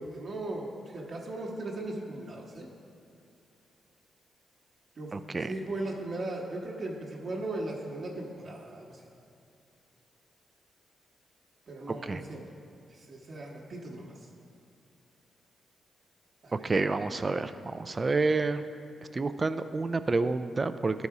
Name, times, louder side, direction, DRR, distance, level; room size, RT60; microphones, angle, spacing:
voice 1, 0.0-2.7 5.0-5.2 5.5-9.0 11.7-12.4 13.0-14.2 16.4-16.7, right 2 dB, 55° right, -2 dB, 1.1 m, -37 dB
voice 2, 5.1-5.5 12.0-12.2 16.5-18.6 19.1-21.1, right 3 dB, 35° right, 11 dB, 0.3 m, -29 dB
12.0 x 4.1 x 4.8 m, 2.5 s
cardioid pair, 70°, 0 cm